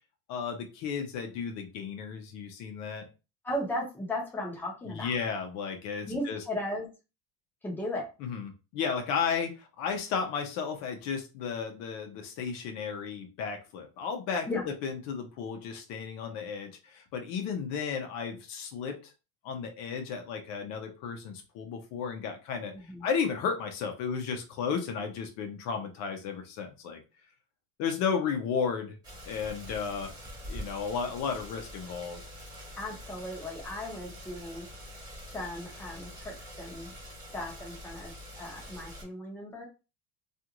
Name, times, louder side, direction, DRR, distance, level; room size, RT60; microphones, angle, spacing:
voice 1, 0.3-3.1 4.9-6.4 8.2-14.5 14.8-19.1 19.4-22.7 23.0-27.0 27.8-29.0 29.2-30.1 30.5-32.2, left 6 dB, 55° left, 4 dB, 0.7 m, -33 dB
voice 2, 3.4-5.1 6.1-6.9 7.6-8.1 14.5-14.7 22.7-23.1 32.8-34.7 35.3-36.9 37.3-39.7, left 1 dB, 5° left, -3 dB, 0.8 m, -36 dB
sound 1, 29.0-39.0, equal, 10° right, 1.1 m, -45 dB
2.5 x 2.4 x 2.9 m, 0.30 s
cardioid pair, 165°, 32 cm